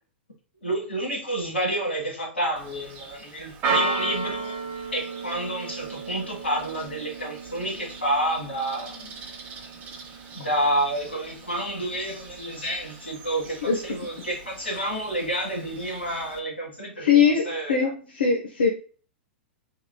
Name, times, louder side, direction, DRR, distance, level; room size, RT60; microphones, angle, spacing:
voice 1, 0.6-4.6 4.9-9.1 10.3-13.6 13.8-17.9, right 1 dB, 90° left, 1.5 m, -29 dB
Church bell, 2.6-16.4, right 4 dB, 30° right, 0.9 m, -35 dB
voice 2, 17.0-18.7, left 6 dB, 70° left, 0.7 m, -21 dB
3.7 x 3.0 x 2.3 m
figure-of-eight pair, 105°, 6 cm